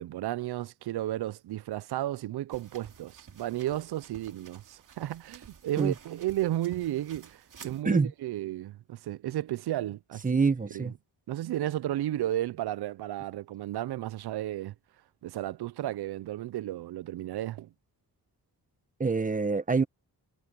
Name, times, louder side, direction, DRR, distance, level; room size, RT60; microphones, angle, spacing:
voice 1, 0.0-10.2 10.7-10.9 11.3-14.7 15.2-17.7, right 13 dB, 85° right, 0.7 m, -33 dB
sound 1, 2.5-7.8, right 6 dB, 55° right, 3.1 m, -52 dB
voice 2, 10.2-10.9 19.0-19.8, right 4 dB, 20° right, 1.0 m, -25 dB
cardioid pair, 115°, 38 cm